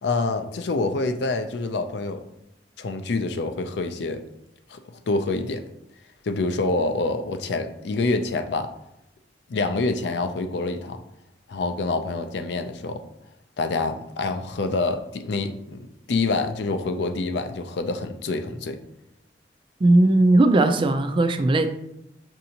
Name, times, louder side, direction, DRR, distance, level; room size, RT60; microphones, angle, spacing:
voice 1, 0.0-2.2 2.8-4.2 4.7-4.8 5.1-5.6 6.2-8.7 9.5-11.0 11.5-13.0 13.6-15.8 16.1-18.8, left 3 dB, 70° left, 7 dB, 0.4 m, -26 dB
voice 2, 19.8-21.7, right 2 dB, 30° right, 9 dB, 0.3 m, -18 dB
6.4 x 2.7 x 2.8 m, 0.83 s
head